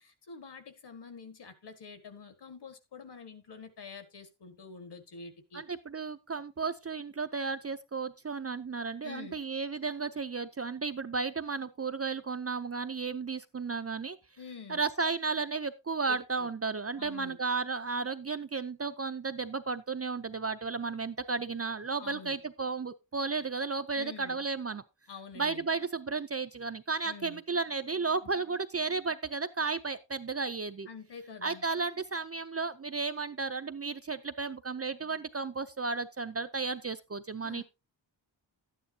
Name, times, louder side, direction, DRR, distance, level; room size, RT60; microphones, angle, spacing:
voice 1, 0.0-5.6 9.0-9.4 14.4-14.8 16.1-16.5 16.9-17.4 22.0-22.4 23.9-24.4 25.1-25.7 27.0-27.4 30.9-31.6 37.4-37.6, left 5 dB, 60° left, 1.8 m, -47 dB
voice 2, 5.5-14.2 14.7-24.8 25.4-30.9 31.4-37.6, right 4 dB, 30° right, 0.5 m, -33 dB
12.5 x 9.5 x 2.7 m
wide cardioid pair, 175°, 47 cm